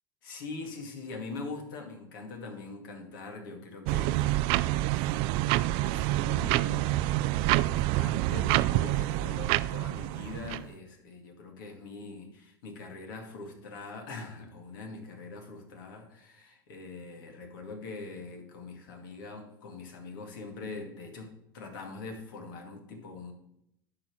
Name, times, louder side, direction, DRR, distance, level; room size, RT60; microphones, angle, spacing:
voice 1, 0.2-4.5 4.7-7.1 7.7-23.3, left 3 dB, 70° left, 3 dB, 2.2 m, -43 dB
sound 1, 3.9-10.7, right 16 dB, 55° right, 0.4 m, -27 dB
11.0 x 4.3 x 6.3 m, 0.77 s
hypercardioid pair, 90°, 11 cm